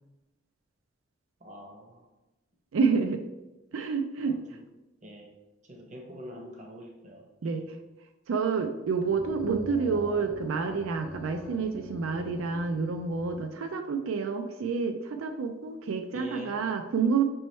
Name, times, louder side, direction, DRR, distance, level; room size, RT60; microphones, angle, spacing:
voice 1, 1.4-2.1 4.3-4.6 5.0-5.3 5.6-7.6 16.1-16.6, equal, 35° right, 2 dB, 0.7 m, -45 dB
voice 2, 2.7-3.2 3.7-4.4 7.4-7.7 8.3-17.2, right 5 dB, 85° right, 6 dB, 0.4 m, -28 dB
sound 1, 8.8-13.4, left 1 dB, 15° left, 0.4 m, -45 dB
5.3 x 3.1 x 3.1 m, 1.0 s
head